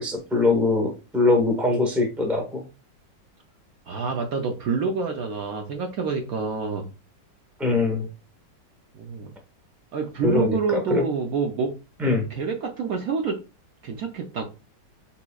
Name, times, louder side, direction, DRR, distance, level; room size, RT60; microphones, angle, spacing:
voice 1, 0.0-2.6 7.6-8.1 10.2-11.0 12.0-12.3, left 3 dB, ahead, 2 dB, 0.6 m, -22 dB
voice 2, 3.9-6.9 8.9-9.3 9.9-11.7 12.3-13.4 13.8-14.4, right 5 dB, 65° right, 3 dB, 0.9 m, -27 dB
7.0 x 2.9 x 2.3 m, 0.31 s
omnidirectional pair, 2.0 m